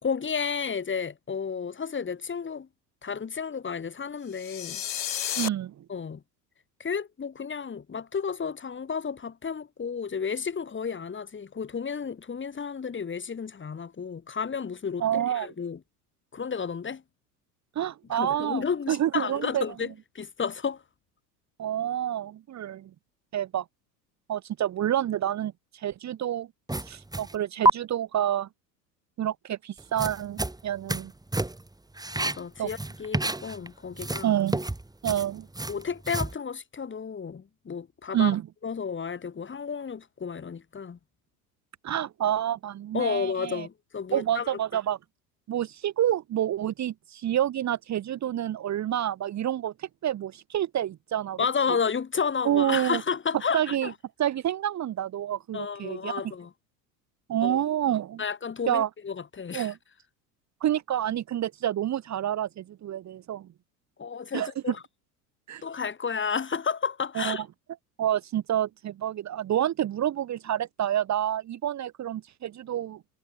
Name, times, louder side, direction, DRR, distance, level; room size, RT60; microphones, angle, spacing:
voice 1, 0.0-2.7 3.0-4.8 5.9-6.2 6.8-15.8 16.3-17.0 18.1-20.8 32.2-34.4 35.7-38.4 38.6-41.0 42.9-44.6 51.4-53.9 55.5-56.5 57.4-57.6 58.2-59.7 64.0-64.8 65.6-67.4, left 6 dB, 25° left, 4.1 m, -32 dB
sound 1, 4.3-5.5, left 11 dB, 80° left, 1.7 m, -32 dB
voice 2, 5.4-5.7 15.0-15.5 17.7-19.6 21.6-22.9 23.3-23.6 24.3-26.5 26.9-28.5 29.2-31.1 32.6-32.7 34.2-34.6 35.0-35.5 38.1-38.4 41.8-43.7 44.1-45.0 45.5-51.4 52.4-53.0 53.5-53.9 54.2-56.1 57.3-58.2 58.7-58.9 59.5-59.7 60.6-63.5 64.3-64.7 65.5-65.6 67.1-67.4 68.0-73.0, right 11 dB, 35° right, 1.6 m, -28 dB
sound 2, 26.7-27.4 27.6-27.7 29.8-31.1 31.3-31.7 32.0-33.7 33.9-36.3, right 2 dB, 10° right, 6.6 m, -28 dB
hypercardioid pair, 80°, 49 cm